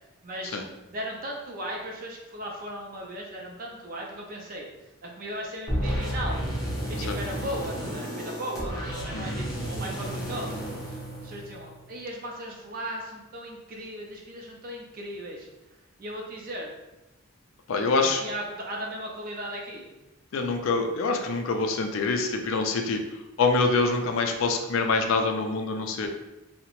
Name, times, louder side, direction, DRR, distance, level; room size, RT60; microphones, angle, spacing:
voice 1, 0.2-0.6 0.9-4.7 5.0-6.5 6.9-15.5 16.0-16.7 18.0-19.9, right 1 dB, 40° right, 0 dB, 0.4 m, -37 dB
sound 1, 5.7-11.8, equal, 15° left, 0.6 m, -32 dB
voice 2, 9.1-9.4 17.7-18.2 20.3-23.0 23.4-26.1, left 3 dB, 65° left, 4 dB, 0.4 m, -25 dB
2.7 x 2.1 x 2.8 m, 1.0 s
head